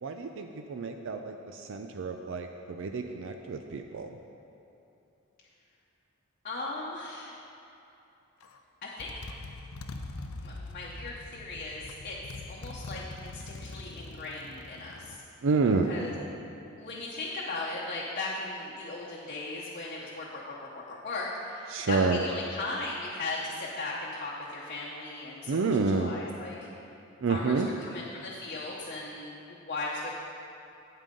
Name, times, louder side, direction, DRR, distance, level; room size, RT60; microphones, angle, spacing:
voice 1, 0.0-4.2 15.4-15.9 21.7-22.2 25.5-26.1 27.2-27.7, right 4 dB, 65° right, 5 dB, 0.4 m, -29 dB
voice 2, 6.4-7.4 8.8-9.1 10.4-12.2 12.5-15.2 15.9-16.1 16.8-26.6 27.3-30.1, left 2 dB, 45° left, -5 dB, 0.9 m, -37 dB
Motorcycle, 8.4-8.6 9.0-15.2, left 2 dB, 90° left, 0.6 m, -43 dB
9.1 x 8.9 x 3.8 m, 2.9 s
head